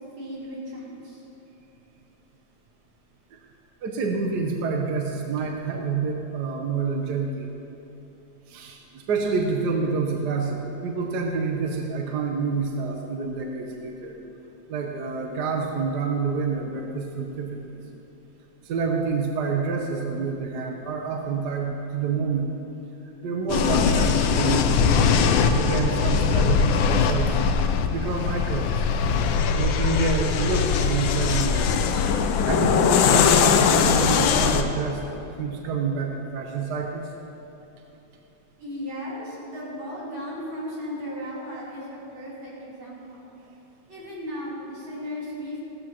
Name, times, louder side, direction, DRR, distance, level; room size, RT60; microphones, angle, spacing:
voice 1, 0.2-1.2 38.6-43.4 43.9-45.6, equal, 80° right, -9 dB, 4.3 m, -36 dB
voice 2, 3.8-7.5 8.5-14.2 14.7-17.8 18.6-22.5 23.2-25.1 25.4-27.4 27.9-28.7 29.6-31.7 32.5-37.0, right 4 dB, 60° right, 2 dB, 1.3 m, -28 dB
sound 1, 23.5-34.6, left 6 dB, 80° left, 1.4 m, -21 dB
16.0 x 13.5 x 3.0 m, 2.9 s
omnidirectional pair, 2.2 m